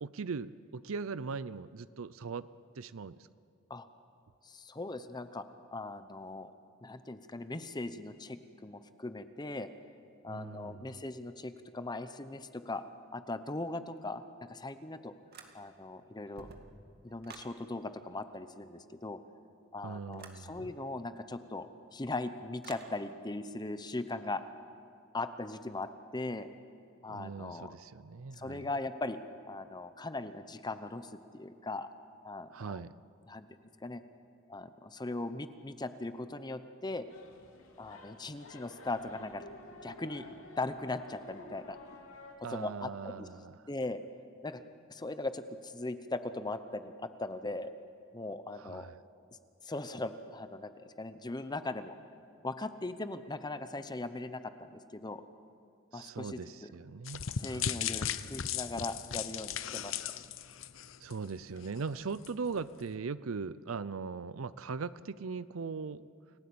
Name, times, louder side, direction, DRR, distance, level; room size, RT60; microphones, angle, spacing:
voice 1, 0.0-2.5 2.8-3.2 10.3-11.0 19.8-20.7 27.1-28.7 32.5-32.9 42.4-43.5 48.5-49.0 55.9-57.8 61.0-66.1, right 5 dB, 85° right, 16 dB, 0.6 m, -40 dB
voice 2, 4.4-5.4 5.7-6.5 6.8-9.7 10.2-12.8 13.1-15.1 15.5-16.5 17.0-19.2 19.7-24.4 25.1-26.5 27.0-27.7 28.4-29.2 29.5-31.9 32.2-32.8 33.3-33.5 33.8-34.0 34.5-37.0 37.8-39.4 39.8-40.3 40.6-41.8 42.5-43.3 43.7-44.0 44.4-44.6 44.9-47.7 48.1-48.9 49.6-51.9 52.4-55.2 55.9-56.4 57.4-60.0, left 2 dB, 20° left, 11 dB, 0.8 m, -39 dB
sound 1, 15.3-15.9 16.2-17.6 20.1-20.4 22.6-22.9, right 4 dB, 50° right, 2.1 m, -51 dB
sound 2, 37.1-42.4, left 2 dB, 85° left, 2.8 m, -51 dB
sound 3, 57.1-61.3 61.6-61.8 62.2-62.3, left 8 dB, 70° left, 0.8 m, -36 dB
29.0 x 17.5 x 8.6 m, 2.4 s
head